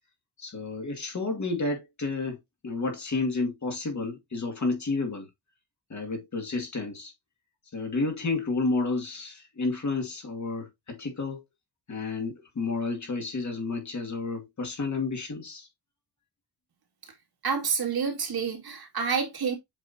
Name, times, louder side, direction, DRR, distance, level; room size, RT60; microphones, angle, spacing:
voice 1, 0.4-2.4 2.6-5.3 5.9-7.1 7.7-11.4 11.9-15.7, left 3 dB, 45° left, 2.2 m, -31 dB
voice 2, 17.4-19.6, right 6 dB, 65° right, 2.4 m, -28 dB
7.8 x 4.8 x 2.7 m
wide cardioid pair, 180°, 41 cm